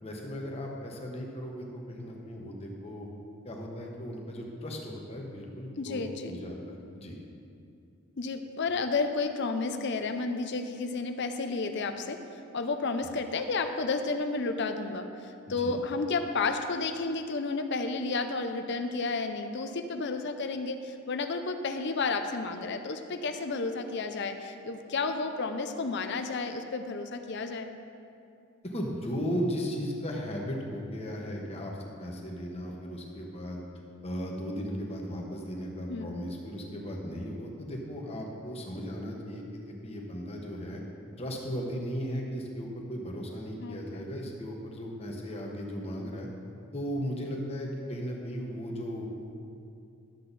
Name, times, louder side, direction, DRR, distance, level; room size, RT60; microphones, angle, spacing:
voice 1, 0.0-3.1 3.4-7.1 15.5-15.7 28.6-31.7 32.0-33.6 34.0-40.8 41.2-46.3 46.7-49.1, equal, 30° left, 0 dB, 1.2 m, -36 dB
voice 2, 5.8-6.4 8.2-12.2 12.5-27.7 35.9-36.1 43.6-44.1, left 3 dB, 55° left, 7 dB, 0.6 m, -32 dB
12.0 x 7.5 x 4.1 m, 2.6 s
head